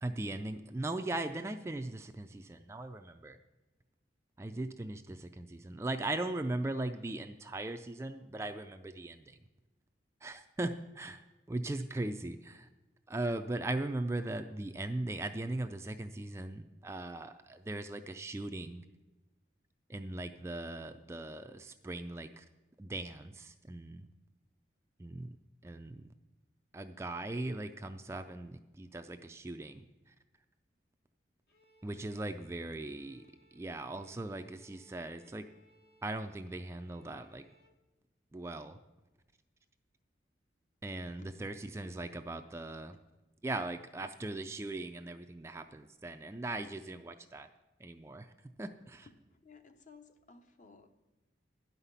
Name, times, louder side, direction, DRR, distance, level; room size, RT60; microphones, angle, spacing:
voice 1, 0.0-3.4 4.4-9.4 10.2-12.7 13.1-18.8 19.9-22.5 22.8-24.1 25.0-25.4 25.6-26.1 26.7-30.1 31.8-33.3 33.5-35.5 36.0-37.5 38.3-38.8 40.8-43.0 43.4-47.5 47.8-49.1, right 2 dB, 15° right, 7 dB, 0.3 m, -39 dB
Bowed string instrument, 31.5-37.8, left 1 dB, 65° left, 1.2 m, -66 dB
voice 2, 49.3-50.9, left 4 dB, 40° left, 7 dB, 0.8 m, -57 dB
11.0 x 5.7 x 8.1 m, 1.1 s
head